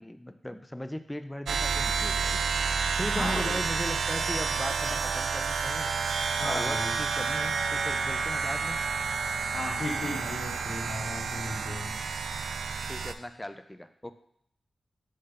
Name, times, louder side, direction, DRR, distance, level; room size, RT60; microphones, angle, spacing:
voice 1, 0.0-2.4 2.7-5.9 6.4-8.8 12.9-14.1, left 1 dB, 15° left, 10 dB, 0.4 m, -38 dB
sound 1, 1.5-13.1, right 5 dB, 85° right, 0.4 m, -30 dB
voice 2, 3.0-3.6 4.9-5.0 6.4-6.9 9.5-12.0, left 1 dB, 65° left, -4 dB, 2.5 m, -35 dB
6.5 x 3.8 x 5.5 m, 0.71 s
cardioid pair, 45°, 0 cm